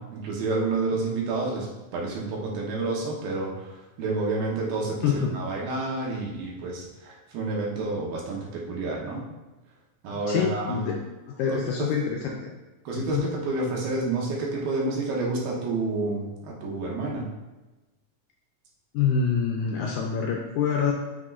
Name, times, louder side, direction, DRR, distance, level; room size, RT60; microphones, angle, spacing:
voice 1, 0.0-1.7 1.9-9.2 10.0-11.0 11.5-11.9 12.8-17.3, right 3 dB, 85° right, -3 dB, 3.1 m, -29 dB
voice 2, 5.0-5.3 10.1-11.0 11.3-12.5 12.9-13.3 18.9-20.9, left 6 dB, 85° left, 0 dB, 1.8 m, -26 dB
7.3 x 6.1 x 2.5 m, 1.1 s
omnidirectional pair, 4.1 m